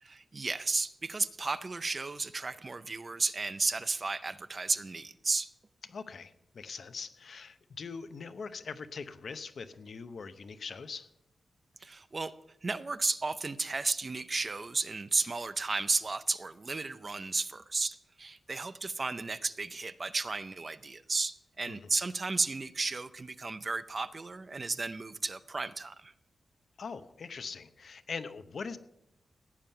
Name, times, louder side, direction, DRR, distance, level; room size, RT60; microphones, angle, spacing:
voice 1, 0.0-5.5 11.8-12.3 12.6-26.1, right 3 dB, 30° right, 13 dB, 0.5 m, -33 dB
voice 2, 5.9-11.1 21.7-21.8 26.8-28.8, left 5 dB, 55° left, 11 dB, 0.8 m, -42 dB
16.0 x 9.0 x 5.6 m, 0.84 s
wide cardioid pair, 135°, 0 cm